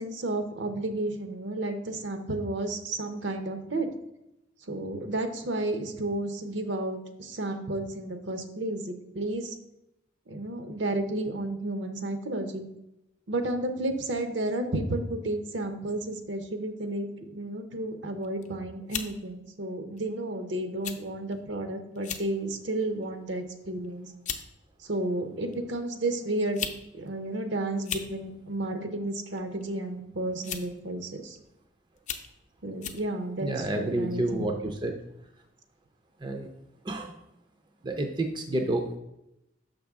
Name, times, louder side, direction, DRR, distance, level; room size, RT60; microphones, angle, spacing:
voice 1, 0.0-3.9 4.7-9.6 10.3-12.7 13.3-24.1 24.8-26.7 26.9-31.4 32.6-34.6, right 1 dB, 65° right, 7 dB, 0.7 m, -32 dB
sound 1, 18.2-18.5 18.9-19.1 20.0-20.2 20.8-21.0 21.3-21.4 22.0-22.3 22.8-23.1 23.8-23.9 24.3-24.5 25.5-25.6 26.4-26.8 27.1-27.2 27.7-28.1 29.3-29.6 30.4-30.8 31.4-31.5 32.0-32.3 32.8-33.0, left 8 dB, 40° left, 0.5 m, -35 dB
voice 2, 33.4-34.9 36.2-36.5 36.8-37.1 37.8-39.0, right 1 dB, 25° right, 4 dB, 0.4 m, -29 dB
6.6 x 5.2 x 3.5 m, 0.87 s
head